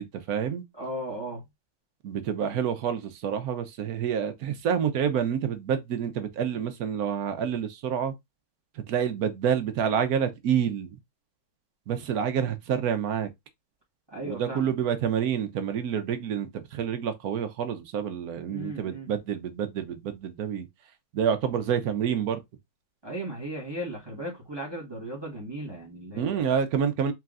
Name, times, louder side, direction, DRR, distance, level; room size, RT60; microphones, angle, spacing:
voice 1, 0.0-0.6 2.0-8.1 8.7-11.0 11.9-13.3 14.2-20.7 21.1-22.4 26.1-27.1, right 8 dB, 75° right, 1.3 m, -28 dB
voice 2, 0.7-1.4 14.1-14.7 18.5-19.1 23.0-26.4, right 1 dB, 20° right, 1.2 m, -36 dB
4.4 x 3.4 x 2.4 m
omnidirectional pair, 1.6 m